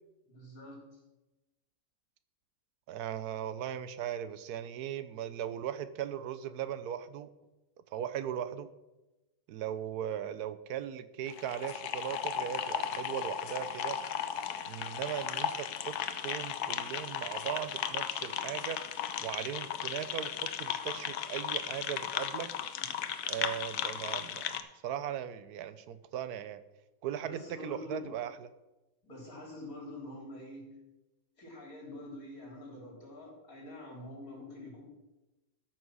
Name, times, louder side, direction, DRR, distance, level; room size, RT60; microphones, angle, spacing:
voice 1, 0.3-1.0 22.8-22.9 27.2-28.1 29.0-30.7 31.4-34.8, left 1 dB, 65° left, -2 dB, 4.2 m, -46 dB
voice 2, 2.9-7.3 7.9-8.7 9.5-14.0 14.7-16.0 16.2-18.8 19.2-22.5 23.3-26.6 27.0-28.5, right 10 dB, 85° right, 13 dB, 1.2 m, -38 dB
sound 1, 11.3-24.6, left 9 dB, 85° left, 1.3 m, -36 dB
13.0 x 6.1 x 6.2 m, 1.0 s
omnidirectional pair, 1.6 m